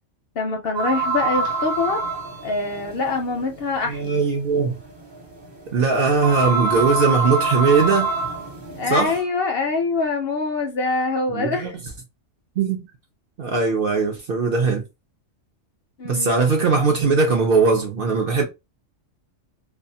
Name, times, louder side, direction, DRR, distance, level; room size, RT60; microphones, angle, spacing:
voice 1, 0.4-2.0 2.4-4.2 8.7-11.7 16.0-16.3, left 3 dB, 60° left, 0.6 m, -24 dB
sound 1, 0.7-9.2, right 3 dB, 40° right, 1.0 m, -26 dB
voice 2, 3.9-4.8 5.7-8.1 8.9-9.2 11.3-11.8 12.6-12.9 13.4-14.8 16.0-18.4, right 4 dB, 60° right, 0.6 m, -20 dB
2.4 x 2.3 x 2.6 m
omnidirectional pair, 1.3 m